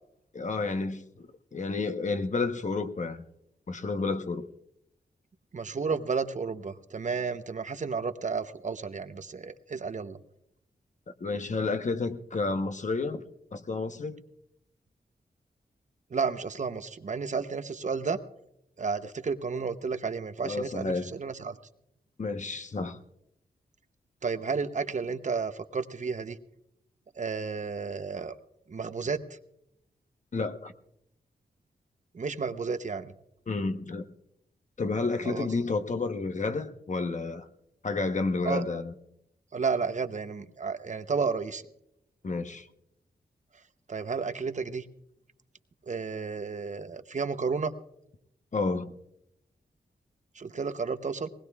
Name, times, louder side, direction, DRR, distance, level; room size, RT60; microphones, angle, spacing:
voice 1, 0.3-3.2 3.7-4.5 11.2-14.2 20.4-21.1 22.2-23.0 30.3-30.7 33.5-34.1 34.8-37.5 37.8-38.9 42.2-42.7 48.5-48.9, left 3 dB, 45° left, 1.0 m, -31 dB
voice 2, 5.5-10.2 16.1-18.2 18.8-21.6 24.2-26.4 27.2-28.3 28.7-29.2 32.1-33.1 35.2-35.5 38.4-38.6 39.5-41.6 43.9-44.9 45.9-47.7 50.4-51.3, right 5 dB, 50° right, 0.8 m, -32 dB
20.5 x 19.5 x 2.4 m
cardioid pair, 75°, 17 cm